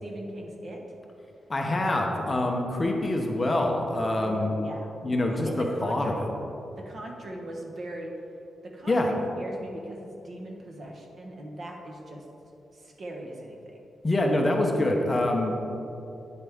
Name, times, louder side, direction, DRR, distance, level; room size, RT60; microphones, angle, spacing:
voice 1, 0.0-0.8 3.5-3.9 4.2-4.9 5.3-6.3 6.8-8.1 8.6-12.2 12.7-13.6, right 1 dB, 45° right, 0 dB, 1.2 m, -40 dB
voice 2, 1.5-4.5 5.0-5.5 5.8-6.3 8.9-9.1 14.0-15.6, left 1 dB, 20° left, 1 dB, 0.8 m, -25 dB
9.1 x 8.1 x 3.5 m, 2.9 s
wide cardioid pair, 150°, 0 cm